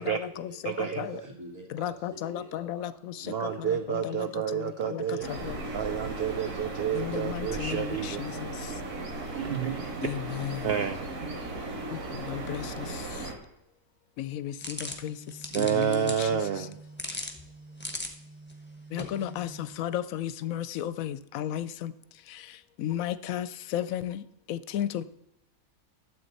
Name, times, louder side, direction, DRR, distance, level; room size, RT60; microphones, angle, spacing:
voice 1, 0.0-0.8 1.1-7.0, right 2 dB, 10° right, -1 dB, 2.1 m, -50 dB
voice 2, 0.6-1.3 3.2-5.3 5.7-8.2 8.7-8.8 9.3-10.1 10.6-11.1 15.5-16.8, right 9 dB, 70° right, 9 dB, 0.6 m, -30 dB
voice 3, 1.8-2.9 3.9-4.2 7.0-7.8 8.2-8.3 10.0-10.5 12.3-12.6 14.3-14.5 15.0-15.1 15.6-16.1 18.9-19.5 19.8-21.9 22.8-23.5 23.7-24.2 24.5-25.0, left 11 dB, 70° left, 15 dB, 1.0 m, -32 dB
sound 1, 5.2-13.3, right 2 dB, 90° right, 2.2 m, -36 dB
sound 2, 14.6-19.8, left 1 dB, 10° left, 0.8 m, -40 dB
12.0 x 7.8 x 4.1 m, 0.86 s
omnidirectional pair, 1.6 m